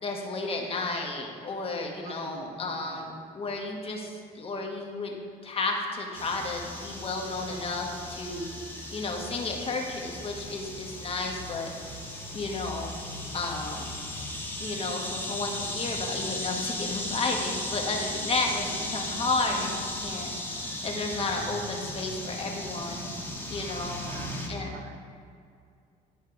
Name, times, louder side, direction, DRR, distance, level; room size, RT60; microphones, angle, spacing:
voice 1, 0.0-5.1 5.4-8.5 8.9-11.7 12.3-12.9 13.3-13.9 14.6-20.3 20.5-23.1 23.5-24.0 24.5-24.8, left 3 dB, 35° left, 1 dB, 1.3 m, -32 dB
voice 2, 2.0-3.2 18.4-19.1 24.0-25.0, right 6 dB, 70° right, 7 dB, 0.7 m, -46 dB
sound 1, 6.1-24.5, left 1 dB, 10° left, 1.2 m, -36 dB
10.5 x 4.2 x 5.2 m, 2.3 s
cardioid pair, 110°, 17 cm